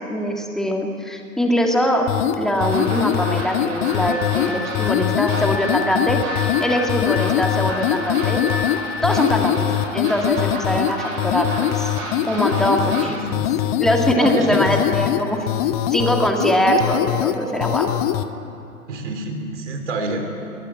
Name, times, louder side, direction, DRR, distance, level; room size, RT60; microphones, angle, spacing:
voice 1, 0.1-2.1 2.4-8.4 9.0-11.9 12.3-13.1 13.8-15.5 15.9-17.9, equal, ahead, 2 dB, 1.9 m, -22 dB
sound 1, 2.1-18.3, left 12 dB, 30° left, 0.7 m, -23 dB
sound 2, 2.6-13.1, right 2 dB, 35° right, 7.8 m, -33 dB
Glass, 3.9-9.0, left 4 dB, 15° right, 6.1 m, -32 dB
voice 2, 12.5-13.7 14.0-14.7 16.5-16.6 18.9-20.3, right 2 dB, 55° right, 5 dB, 3.8 m, -28 dB
21.0 x 18.5 x 8.8 m, 2.7 s
figure-of-eight pair, 110°, 42 cm